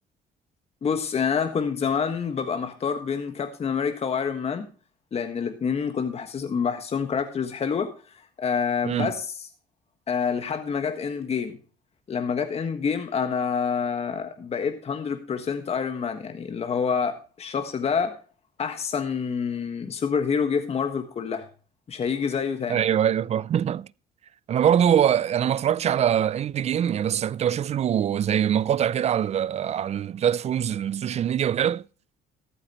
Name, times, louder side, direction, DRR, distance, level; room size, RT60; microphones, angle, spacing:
voice 1, 0.8-4.7 5.1-7.9 8.4-9.5 10.1-11.6 12.1-18.2 18.6-21.5 21.9-22.8, left 6 dB, 35° left, 1.5 m, -27 dB
voice 2, 22.7-23.9 24.5-31.8, right 9 dB, 40° right, 0.4 m, -23 dB
14.0 x 11.5 x 3.0 m
cardioid pair, 110°, 17 cm